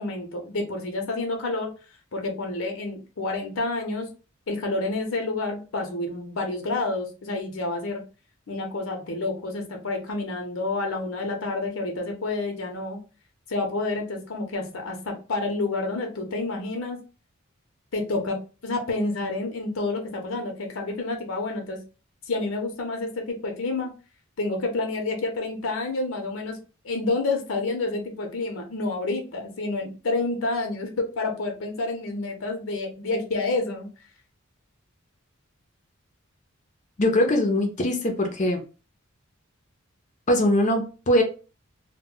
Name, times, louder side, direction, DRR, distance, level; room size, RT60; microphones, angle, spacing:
voice 1, 0.0-1.7 2.1-4.1 4.5-8.0 8.5-13.0 13.5-17.0 17.9-21.8 22.3-23.9 24.4-26.6 26.8-33.9, left 2 dB, 75° left, 3 dB, 0.6 m, -29 dB
voice 2, 37.0-38.6 40.3-41.2, left 1 dB, 35° left, 3 dB, 0.5 m, -21 dB
2.1 x 2.1 x 3.6 m, 0.34 s
head